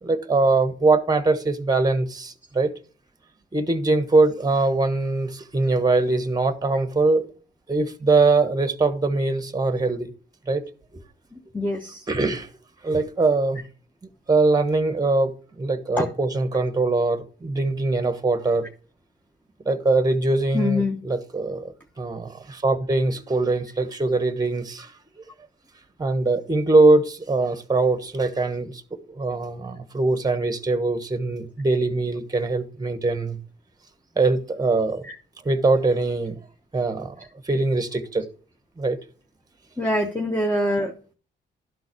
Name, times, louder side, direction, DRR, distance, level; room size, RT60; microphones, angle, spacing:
voice 1, 0.0-2.7 3.5-7.3 7.7-10.1 10.5-10.7 12.1-12.5 12.8-13.6 14.3-18.7 19.6-24.9 26.0-28.8 29.1-33.4 34.2-35.1 35.4-36.4 36.7-38.2 38.8-39.0, right 3 dB, 20° right, 1.1 m, -22 dB
voice 2, 11.5-12.0 16.0-16.1 20.5-21.0 35.1-35.2 39.8-41.1, left 1 dB, 10° left, 1.1 m, -24 dB
12.0 x 4.0 x 6.0 m
supercardioid pair, 65°, 20 cm